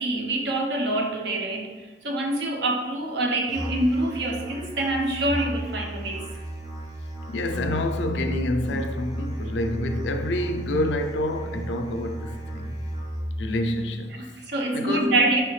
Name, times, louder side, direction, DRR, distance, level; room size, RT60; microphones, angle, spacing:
voice 1, 0.0-1.7 2.0-6.2 14.1-15.4, right 2 dB, 65° right, 0.7 m, -25 dB
Musical instrument, 3.5-13.5, right 1 dB, 20° right, 0.8 m, -33 dB
voice 2, 7.3-12.8 13.4-14.2 14.7-15.2, left 1 dB, 80° left, 0.4 m, -28 dB
4.8 x 3.3 x 3.1 m
head